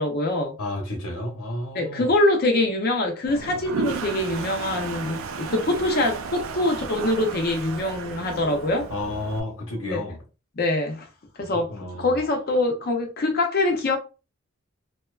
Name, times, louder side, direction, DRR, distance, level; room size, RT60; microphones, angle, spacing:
voice 1, 0.0-0.5 1.7-8.9 9.8-10.0 10.6-11.1 11.4-14.0, left 2 dB, 45° left, 0.5 m, -24 dB
voice 2, 0.6-2.1 8.9-10.2 11.5-12.1, left 1 dB, 80° left, 0.9 m, -31 dB
Toilet flush, 3.3-9.4, right 5 dB, 70° right, 0.4 m, -33 dB
2.7 x 2.2 x 2.3 m
head